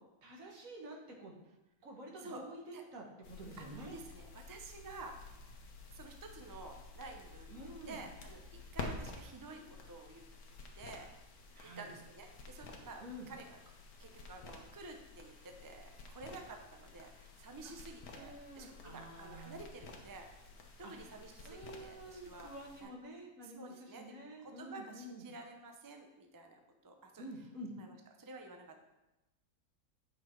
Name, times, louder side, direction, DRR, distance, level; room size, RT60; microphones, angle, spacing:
voice 1, 0.2-1.3 1.8-4.0 7.5-8.0 11.5-11.9 13.0-13.3 17.6-19.6 20.8-25.3 27.2-27.7, right 1 dB, 60° right, 0 dB, 1.8 m, -49 dB
sound 1, 3.2-22.8, left 3 dB, 75° left, 1.5 m, -51 dB
voice 2, 3.6-5.2 5.9-10.3 10.8-11.1 11.6-13.7 14.0-20.5 20.8-22.5 22.8-22.9 23.4-24.1 24.4-27.2 27.8-28.8, right 3 dB, 25° right, 4 dB, 0.4 m, -51 dB
8.5 x 5.9 x 4.4 m, 0.99 s
omnidirectional pair, 1.6 m